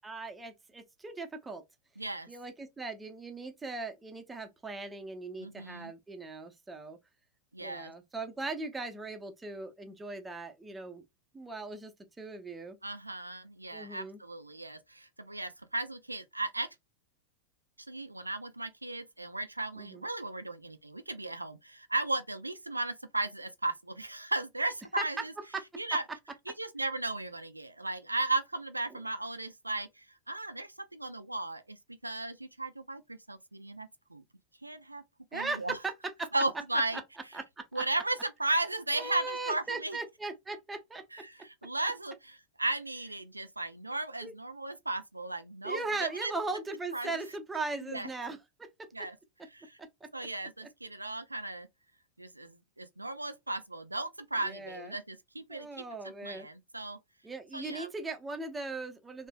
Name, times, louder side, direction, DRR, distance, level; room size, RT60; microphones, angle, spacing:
voice 1, 0.0-1.6 2.3-7.0 7.6-11.0 11.3-12.8 13.7-14.2 19.8-20.0 25.0-25.1 25.5-25.6 28.9-29.0 35.3-35.9 36.2-36.3 37.3-37.8 38.9-41.0 44.2-44.3 45.6-48.7 54.4-55.0 55.5-56.5 57.2-59.3, right 3 dB, 10° right, 0.8 m, -39 dB
voice 2, 2.0-2.3 5.4-5.9 7.5-7.9 12.8-16.7 17.9-25.3 25.8-26.0 26.5-31.8 32.0-34.2 34.6-35.0 35.3-35.8 36.3-37.0 37.7-40.0 41.1-46.3 46.9-47.1 47.9-48.1 48.9-49.2 49.5-49.8 50.1-51.7 52.2-57.0 57.5-57.9, right 2 dB, 85° right, 0.4 m, -35 dB
3.3 x 3.0 x 2.2 m
figure-of-eight pair, 90°, 0 cm